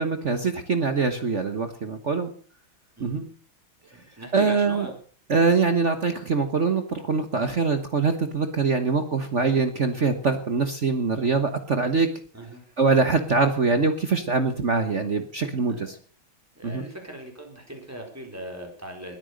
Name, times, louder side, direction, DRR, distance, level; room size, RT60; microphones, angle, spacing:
voice 1, 0.0-2.3 3.0-3.3 4.3-4.9 5.3-12.1 12.8-16.0 16.6-16.8, right 4 dB, 40° right, 8 dB, 1.3 m, -23 dB
voice 2, 3.9-5.0 12.3-12.6 15.7-15.9 16.6-19.2, right 1 dB, 5° right, 1 dB, 4.2 m, -39 dB
21.0 x 9.1 x 6.5 m, 0.43 s
omnidirectional pair, 2.2 m